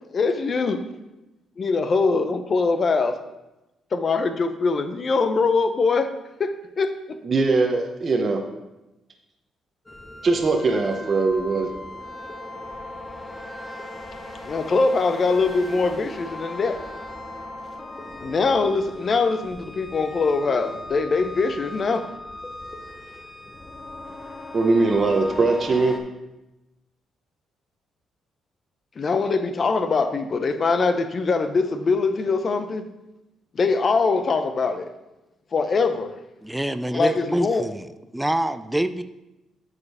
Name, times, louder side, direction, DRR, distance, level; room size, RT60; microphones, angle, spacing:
voice 1, 0.1-0.8 1.6-3.2 3.9-6.1 6.4-7.2 14.4-16.8 18.2-22.1 29.0-32.9 33.5-34.9 35.5-36.1 36.9-37.6, left 4 dB, 45° left, 9 dB, 0.7 m, -22 dB
voice 2, 7.2-8.4 10.2-11.7 24.5-26.0, right 3 dB, 40° right, 2 dB, 0.8 m, -21 dB
sound 1, 9.9-26.0, left 1 dB, 20° left, 1.0 m, -38 dB
voice 3, 36.4-37.9 38.1-39.0, right 1 dB, 5° right, 12 dB, 0.4 m, -25 dB
8.4 x 5.1 x 4.9 m, 0.99 s
cardioid pair, 90°, 0 cm